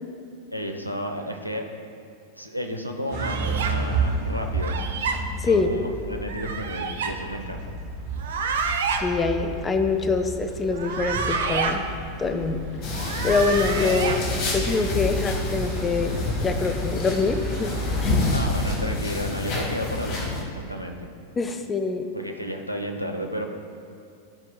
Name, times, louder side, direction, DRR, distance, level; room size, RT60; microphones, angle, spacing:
voice 1, 0.5-1.7 2.3-4.9 5.4-7.7 18.3-21.1 22.1-23.5, equal, 90° left, 3 dB, 0.6 m, -32 dB
sound 1, 3.1-18.8, right 3 dB, 45° right, 1.5 m, -33 dB
sound 2, 3.1-3.7 4.6-5.2 6.3-7.1 8.1-9.0 10.7-11.8 12.9-14.2, right 5 dB, 60° right, 0.5 m, -28 dB
voice 2, 9.0-11.8 12.2-12.7 13.2-14.2 14.5-17.7 18.0-18.2 21.4-22.1, left 4 dB, 20° left, 7 dB, 0.5 m, -24 dB
sound 3, 12.8-20.4, left 2 dB, 40° left, 1.1 m, -28 dB
12.0 x 4.6 x 2.2 m, 2.4 s
figure-of-eight pair, 90°, 0 cm